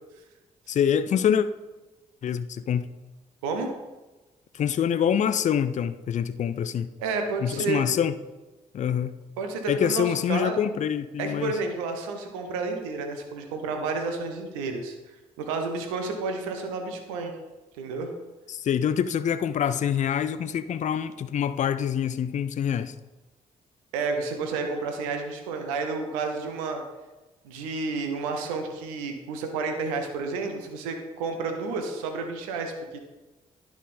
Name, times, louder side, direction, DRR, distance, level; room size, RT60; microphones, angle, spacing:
voice 1, 0.7-1.5 2.2-2.9 4.5-6.9 7.4-8.1 8.7-9.2 9.7-11.6 18.5-22.9, left 8 dB, 45° left, 13 dB, 0.4 m, -25 dB
voice 2, 7.0-7.8 9.4-10.6 11.2-14.9 15.4-17.4 17.8-18.1 23.9-26.8 27.4-33.0, right 4 dB, 90° right, 5 dB, 0.8 m, -30 dB
10.5 x 3.7 x 4.3 m, 1.1 s
hypercardioid pair, 45°, 17 cm